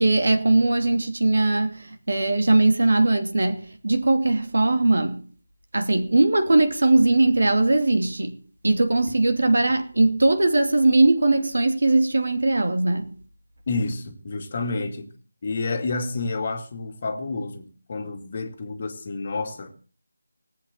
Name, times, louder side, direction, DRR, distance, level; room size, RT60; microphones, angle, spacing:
voice 1, 0.0-5.3 5.7-8.4 8.6-13.2, right 2 dB, 60° right, 2.7 m, -20 dB
voice 2, 13.7-15.1 15.4-19.8, left 3 dB, 35° left, 2.3 m, -29 dB
18.5 x 8.2 x 7.6 m
figure-of-eight pair, 165°, 0 cm